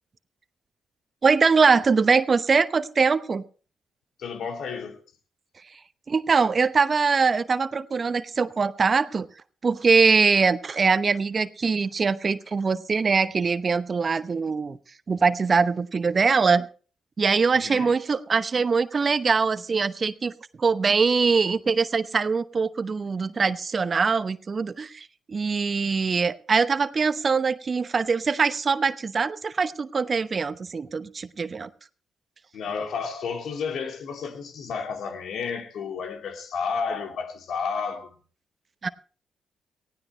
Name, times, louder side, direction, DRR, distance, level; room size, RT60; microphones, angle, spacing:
voice 1, 1.2-3.4 6.1-9.3 9.6-14.8 15.1-16.7 17.2-20.3 20.6-31.7 38.8-38.9, right 5 dB, 45° right, 0.9 m, -22 dB
voice 2, 4.2-5.0 17.5-17.9 32.5-38.2, left 5 dB, 65° left, 2.7 m, -31 dB
18.5 x 16.5 x 3.2 m
hypercardioid pair, 45°, 0 cm